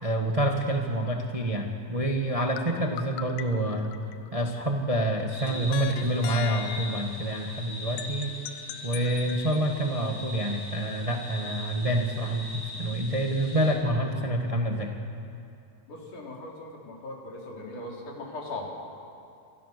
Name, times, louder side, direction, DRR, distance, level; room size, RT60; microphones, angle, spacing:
voice 1, 0.0-3.9 4.3-8.3 8.8-14.9, right 1 dB, 20° right, 2 dB, 0.9 m, -27 dB
sound 1, 2.6-4.5 5.5-7.1 8.0-9.7, left 12 dB, 90° left, 2.5 m, -39 dB
sound 2, 5.3-13.7, left 2 dB, 45° left, 7.0 m, -41 dB
voice 2, 15.9-18.7, left 2 dB, 70° left, -2 dB, 5.3 m, -39 dB
27.0 x 25.0 x 6.9 m, 2.5 s
omnidirectional pair, 3.7 m